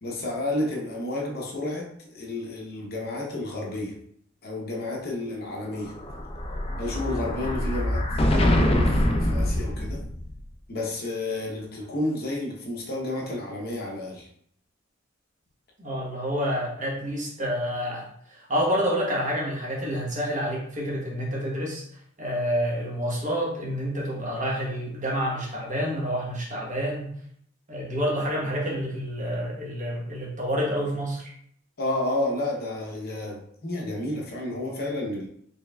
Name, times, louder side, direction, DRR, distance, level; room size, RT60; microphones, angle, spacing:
voice 1, 0.0-4.0 4.4-6.0 6.8-8.1 8.3-10.0 10.7-14.3 31.8-35.3, left 2 dB, 45° left, -1 dB, 0.8 m, -31 dB
Explosion, 5.7-10.4, left 1 dB, 30° left, 0.3 m, -24 dB
voice 2, 15.8-21.8 22.2-27.1 27.7-31.3, equal, 35° right, -3 dB, 1.1 m, -28 dB
4.3 x 3.2 x 2.3 m, 0.66 s
head